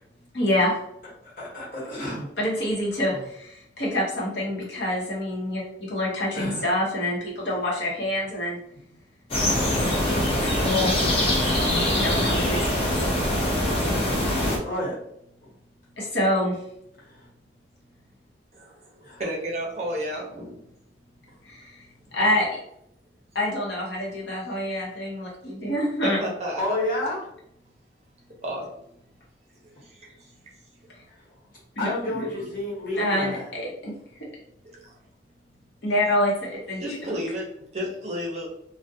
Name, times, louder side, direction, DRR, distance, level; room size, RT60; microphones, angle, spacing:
voice 1, 0.3-0.7 2.4-8.6 10.4-11.0 11.9-12.7 16.0-16.6 21.4-22.6 23.3-26.2 30.9-31.0 31.8-32.3 32.9-33.9 34.2-34.3 35.8-37.2, left 1 dB, 70° left, -4 dB, 0.8 m, -26 dB
voice 2, 1.2-2.3 3.1-3.2 6.3-6.6 14.6-14.9 17.2-17.3 19.1-19.2 26.6-27.2 31.8-33.5, left 1 dB, 50° left, -6 dB, 1.1 m, -30 dB
sound 1, 9.3-14.6, left 1 dB, 30° left, 0.4 m, -23 dB
voice 3, 18.5-20.6 22.1-22.2 26.0-26.8 28.4-28.7 29.8-30.3 32.1-32.5 34.6-34.9 36.8-38.5, equal, 35° right, -2 dB, 0.5 m, -33 dB
2.3 x 2.1 x 2.6 m, 0.76 s
head